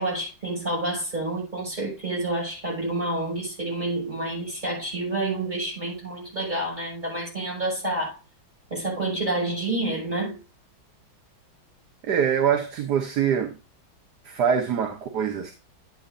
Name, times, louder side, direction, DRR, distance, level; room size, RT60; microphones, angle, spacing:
voice 1, 0.0-8.2 8.7-10.4, right 2 dB, 20° right, 6.2 m, -28 dB
voice 2, 12.0-13.6 14.2-15.5, right 8 dB, 60° right, 1.4 m, -24 dB
11.0 x 8.5 x 2.5 m
omnidirectional pair, 2.2 m